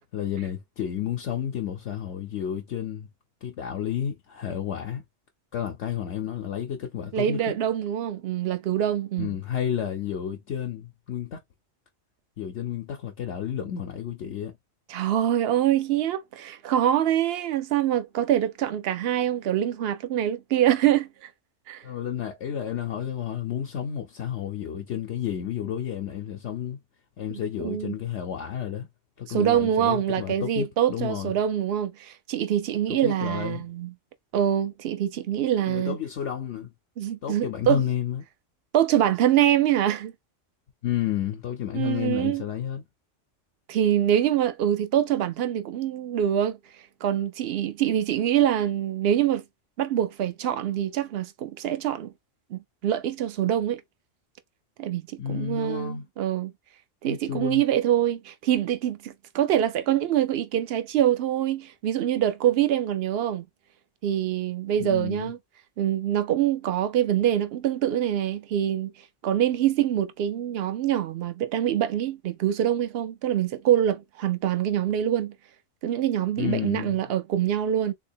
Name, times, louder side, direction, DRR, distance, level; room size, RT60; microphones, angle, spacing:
voice 1, 0.1-3.1 3.4-5.0 5.5-7.6 9.2-11.4 12.4-14.6 21.8-26.8 27.2-28.9 29.2-31.3 32.9-33.6 35.7-36.7 37.2-38.2 40.8-42.8 55.2-56.0 57.1-57.6 64.8-65.3 76.4-77.0, left 9 dB, 70° left, 1.0 m, -31 dB
voice 2, 7.1-9.4 14.9-21.1 21.7-21.8 27.3-27.9 29.3-33.9 34.3-36.0 37.0-37.8 38.7-40.1 41.7-42.4 43.7-46.6 47.0-49.4 49.8-52.1 52.5-53.8 54.8-56.5 57.0-63.4 64.0-65.4 65.8-68.9 69.2-75.3 75.8-77.9, right 11 dB, 60° right, 0.8 m, -25 dB
3.7 x 2.8 x 2.6 m
omnidirectional pair, 1.3 m